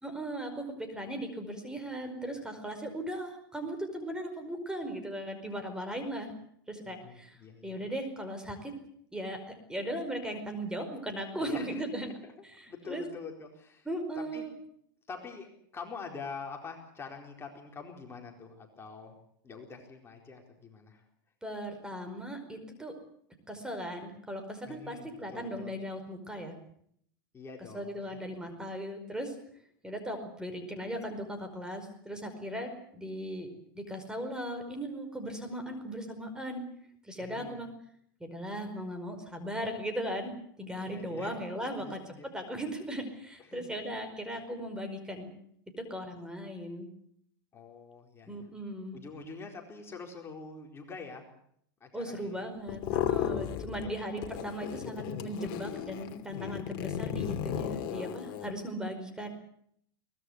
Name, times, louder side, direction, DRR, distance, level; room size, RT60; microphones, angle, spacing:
voice 1, 0.0-6.3 6.7-8.7 9.1-12.1 12.4-13.0 13.8-14.5 21.4-23.0 23.5-26.5 27.7-29.3 29.8-33.5 33.7-36.7 37.1-37.7 38.2-42.0 42.3-45.3 45.8-46.9 48.3-49.0 51.9-59.3, equal, 5° right, 6 dB, 5.0 m, -38 dB
voice 2, 6.8-7.8 11.4-12.3 12.7-13.9 14.2-14.4 15.1-19.2 19.4-21.0 24.6-25.7 27.3-28.1 37.2-37.6 40.9-41.4 41.8-42.3 43.4-43.6 47.5-48.5 48.9-51.3 51.8-52.5 53.6-54.2, left 4 dB, 20° left, 2 dB, 4.5 m, -45 dB
sound 1, 52.7-53.9 54.2-58.5, left 10 dB, 50° left, 2.9 m, -34 dB
23.0 x 19.5 x 8.0 m, 0.67 s
supercardioid pair, 120°, 12 cm